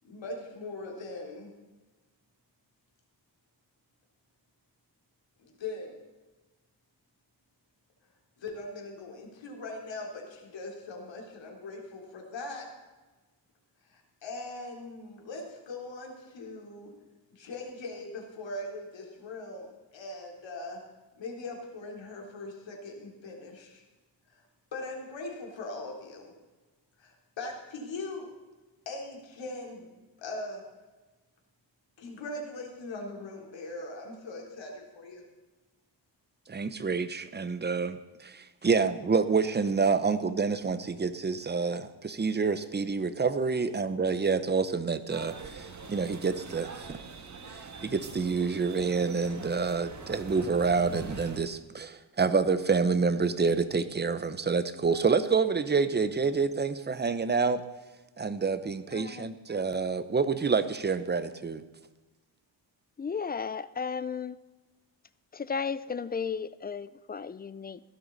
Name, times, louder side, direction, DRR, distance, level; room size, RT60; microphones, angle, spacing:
voice 1, 0.0-1.5 5.4-5.9 8.4-12.7 13.9-16.9 17.3-20.8 21.2-23.8 24.3-24.4 24.7-26.3 27.0-28.3 28.9-29.9 30.2-30.6 32.0-35.2, left 2 dB, 80° left, 3.8 m, -40 dB
voice 2, 36.5-47.0 47.5-57.6 58.2-61.6, right 5 dB, 25° right, 0.8 m, -28 dB
sound 1, 45.1-51.4, right 4 dB, 40° right, 1.6 m, -43 dB
voice 3, 58.9-59.4 63.0-64.4 65.3-67.8, left 6 dB, 25° left, 0.4 m, -34 dB
16.5 x 12.5 x 4.1 m
wide cardioid pair, 125°, 44 cm